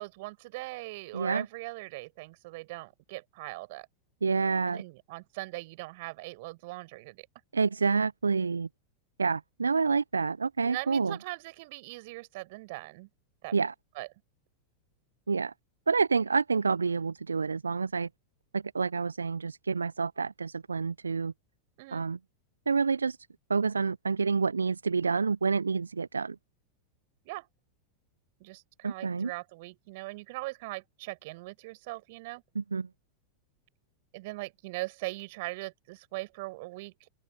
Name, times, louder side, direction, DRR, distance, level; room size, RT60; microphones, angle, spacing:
voice 1, 0.0-3.9 4.6-7.3 10.6-13.1 13.4-13.5 13.9-14.1 21.8-22.0 27.2-27.5 28.4-32.4 34.1-36.9, right 23 dB, 50° right, 6.2 m, -40 dB
voice 2, 1.1-1.5 4.2-4.8 7.5-8.7 9.2-11.2 13.5-13.7 15.3-15.5 15.9-18.1 18.5-21.3 21.9-22.2 22.7-23.2 23.5-26.4 28.8-29.3 32.6-32.9, right 5 dB, 80° right, 0.6 m, -28 dB
open air
figure-of-eight pair, 90°, 0 cm